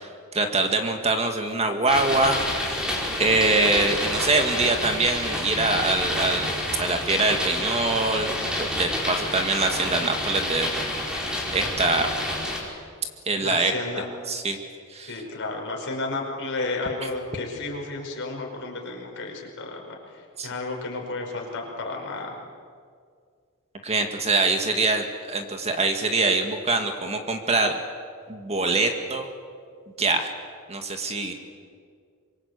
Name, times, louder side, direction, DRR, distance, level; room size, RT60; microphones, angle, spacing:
voice 1, 0.3-2.4 3.2-6.5 6.8-8.3 8.6-10.7 11.5-12.1 13.3-13.7 14.3-14.6 14.9-15.2 20.4-20.5 23.8-27.8 28.3-29.3 30.0-30.3 30.7-31.3, right 3 dB, 30° right, 5 dB, 2.0 m, -24 dB
sound 1, 1.9-12.6, left 1 dB, 5° right, 4.9 m, -28 dB
voice 2, 13.4-14.1 15.1-22.4, left 3 dB, 55° left, 1 dB, 5.1 m, -32 dB
26.0 x 23.0 x 8.3 m, 2.1 s
head